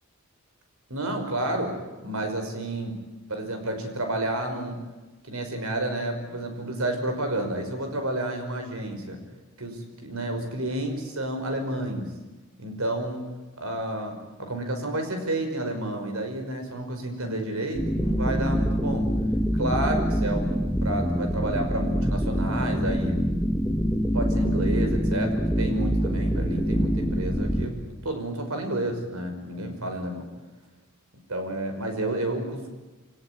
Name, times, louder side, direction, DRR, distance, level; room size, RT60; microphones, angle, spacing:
voice 1, 0.9-1.8 2.0-3.0 3.3-4.8 5.3-9.2 9.6-12.1 12.6-13.2 13.6-19.1 19.5-23.2 24.1-27.7 28.0-30.3 31.3-32.7, right 1 dB, 75° right, 5 dB, 5.6 m, -30 dB
sound 1, 17.7-27.7, equal, 5° left, 1.8 m, -25 dB
27.0 x 18.0 x 9.6 m, 1.2 s
head